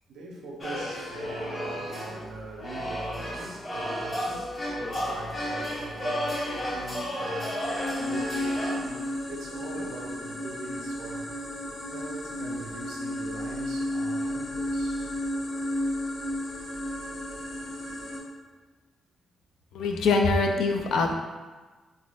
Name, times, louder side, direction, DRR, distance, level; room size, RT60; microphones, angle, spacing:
voice 1, 0.1-11.3 11.9-15.1 17.3-17.7, right 2 dB, 85° right, 0 dB, 0.6 m, -42 dB
sound 1, 0.6-8.7, equal, 25° left, 0.7 m, -33 dB
sound 2, 7.6-18.2, left 1 dB, 55° left, 0.9 m, -33 dB
voice 2, 19.7-21.1, left 3 dB, 85° left, 3 dB, 0.3 m, -23 dB
3.9 x 2.5 x 2.3 m, 1.3 s
wide cardioid pair, 165°, 0 cm